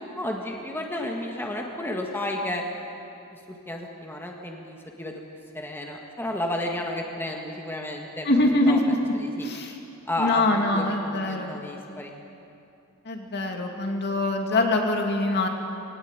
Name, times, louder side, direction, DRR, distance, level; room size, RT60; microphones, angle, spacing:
voice 1, 0.2-2.6 3.3-3.4 3.7-5.2 5.5-8.8 9.2-9.5 10.1-12.1, left 1 dB, 10° left, 0 dB, 1.7 m, -32 dB
voice 2, 8.2-9.1 9.4-9.8 10.2-11.6 13.0-15.5, left 2 dB, 50° left, 2 dB, 2.5 m, -24 dB
21.0 x 18.0 x 9.2 m, 2.7 s
head